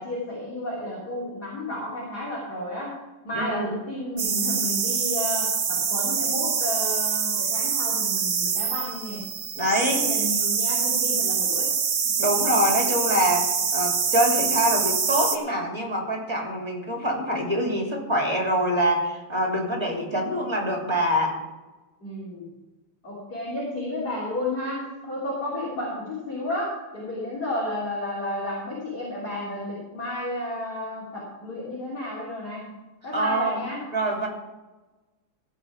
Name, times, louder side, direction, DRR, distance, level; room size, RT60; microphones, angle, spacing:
voice 1, 0.0-2.9 3.3-9.2 9.9-11.7 22.0-22.5 23.0-32.7 33.0-33.8, left 1 dB, 45° left, -8 dB, 3.8 m, -32 dB
voice 2, 3.3-3.8 9.5-10.3 12.2-21.4 33.1-33.6 33.9-34.3, equal, 10° right, 1 dB, 2.9 m, -25 dB
sound 1, 4.2-15.4, right 6 dB, 50° right, 0.8 m, -25 dB
16.0 x 5.6 x 7.2 m, 1.1 s
omnidirectional pair, 2.4 m